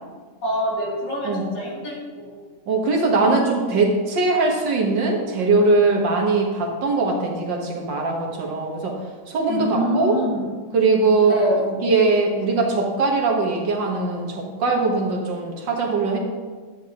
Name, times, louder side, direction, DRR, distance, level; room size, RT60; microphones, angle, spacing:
voice 1, 0.4-2.4 9.5-10.4 11.3-11.6, equal, 75° left, -6 dB, 3.7 m, -25 dB
voice 2, 2.7-9.0 9.3-10.2 10.7-11.4 11.6-16.2, right 3 dB, 80° right, 0 dB, 2.1 m, -21 dB
11.5 x 8.8 x 3.0 m, 1.5 s
omnidirectional pair, 2.0 m